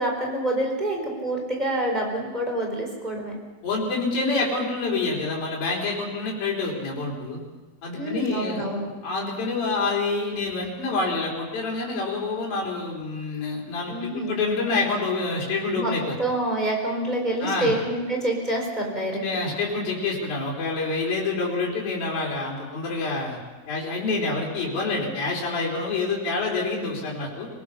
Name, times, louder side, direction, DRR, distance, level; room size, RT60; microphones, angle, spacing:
voice 1, 0.0-3.4 7.9-8.9 13.9-14.4 15.7-15.9 16.2-19.6, right 1 dB, 10° right, 0 dB, 4.4 m, -27 dB
voice 2, 3.6-7.4 7.8-8.6 9.0-16.2 17.4-17.7 19.2-23.4 23.7-27.5, left 3 dB, 85° left, -4 dB, 5.8 m, -27 dB
26.0 x 19.0 x 5.8 m, 1.3 s
omnidirectional pair, 4.1 m